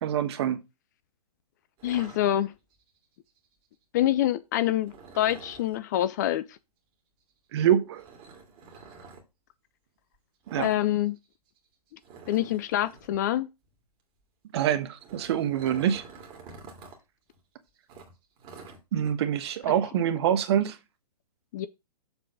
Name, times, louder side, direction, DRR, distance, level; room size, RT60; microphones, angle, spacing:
voice 1, 0.0-0.6 7.5-8.0 10.5-10.7 14.5-16.0 18.9-20.8, right 10 dB, 40° right, 1.1 m, -25 dB
voice 2, 1.8-2.5 3.9-6.6 10.6-11.2 12.3-13.5 21.5-21.7, left 13 dB, 30° left, 0.4 m, -26 dB
sound 1, 1.8-2.8 4.8-5.8 8.0-9.2 10.4-10.8 11.1-11.3 11.6-11.7 12.0-13.2 14.7-17.0 17.3-17.4 17.9-19.1, right 5 dB, 25° right, 2.0 m, -47 dB
7.2 x 3.8 x 6.1 m
figure-of-eight pair, 120°, 20 cm